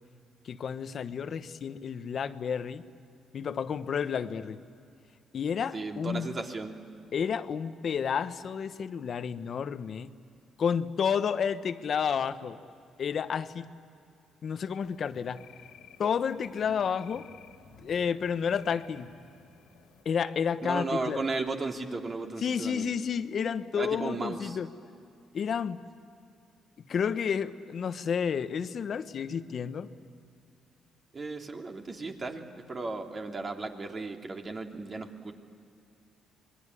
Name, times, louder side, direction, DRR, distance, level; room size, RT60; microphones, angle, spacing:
voice 1, 0.4-2.8 3.3-4.6 5.3-6.3 7.1-10.1 10.6-12.6 13.0-13.7 14.4-15.4 16.0-17.3 17.8-19.1 20.0-21.2 22.4-24.7 25.3-25.8 26.9-29.9, left 7 dB, 55° left, 11 dB, 1.1 m, -30 dB
voice 2, 5.7-6.8 20.6-22.9 23.8-24.6 31.1-35.3, right 3 dB, 35° right, 2 dB, 3.0 m, -35 dB
sound 1, 14.8-20.0, left 5 dB, 90° left, 3.0 m, -54 dB
26.0 x 21.5 x 9.9 m, 2.5 s
cardioid pair, 90°, 0 cm